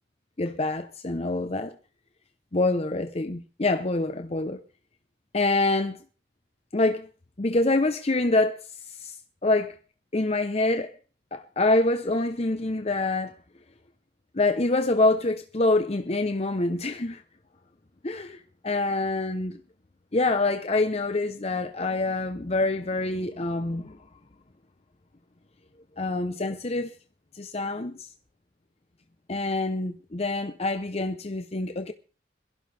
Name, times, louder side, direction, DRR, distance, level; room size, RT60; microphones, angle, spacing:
voice 1, 0.4-1.8 2.5-4.6 5.3-6.0 6.7-7.1 7.4-9.2 9.4-9.8 10.1-11.0 11.3-13.3 14.3-17.2 18.0-19.6 20.1-24.0 26.0-26.9 27.3-28.1 29.3-31.9, left 2 dB, 35° left, 0.8 m, -26 dB
22.5 x 15.5 x 3.4 m
head